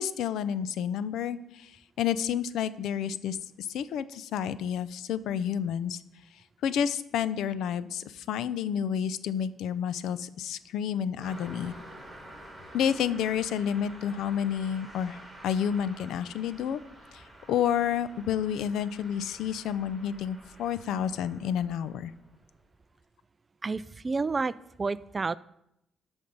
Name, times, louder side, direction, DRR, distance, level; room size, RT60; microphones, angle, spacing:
voice 1, 0.0-1.7 2.0-6.0 6.6-11.7 12.7-15.2 15.4-16.8 17.1-22.1, left 8 dB, 80° left, 15 dB, 0.5 m, -30 dB
Car passing by, 11.2-22.6, right 1 dB, ahead, 3.5 m, -49 dB
voice 2, 23.6-24.5 24.8-25.4, right 4 dB, 30° right, 18 dB, 0.4 m, -29 dB
13.0 x 5.3 x 5.3 m, 0.82 s
cardioid pair, 90°, 0 cm